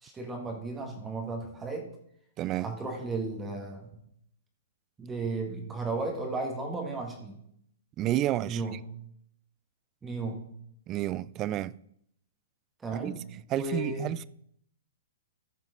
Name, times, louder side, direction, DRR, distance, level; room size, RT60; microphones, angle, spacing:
voice 1, 0.0-1.9 2.6-3.9 5.0-7.4 8.4-8.9 10.0-10.5 12.8-13.2 13.5-14.1, right 3 dB, 15° right, 1.7 m, -34 dB
voice 2, 2.4-2.7 8.0-8.6 10.9-11.8 13.0-13.1 13.5-14.3, right 14 dB, 30° right, 0.3 m, -30 dB
14.5 x 5.9 x 3.9 m
hypercardioid pair, 130°, 0 cm